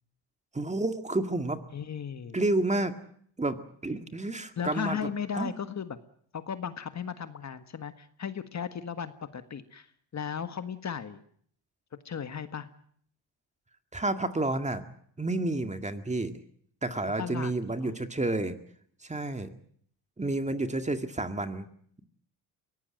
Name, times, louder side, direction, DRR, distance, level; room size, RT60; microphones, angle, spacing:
voice 1, 0.5-1.6 2.3-2.9 3.4-3.6 3.8-5.1 5.3-5.5 13.9-14.8 15.2-16.3 16.8-18.6 19.0-19.5 20.2-21.7, right 2 dB, 15° right, 8 dB, 2.0 m, -30 dB
voice 2, 1.7-2.4 4.6-6.0 6.3-11.2 12.0-12.7 16.9-17.5 17.8-17.9, left 7 dB, 40° left, 10 dB, 1.6 m, -36 dB
23.0 x 18.0 x 9.0 m, 0.62 s
cardioid pair, 95°, 43 cm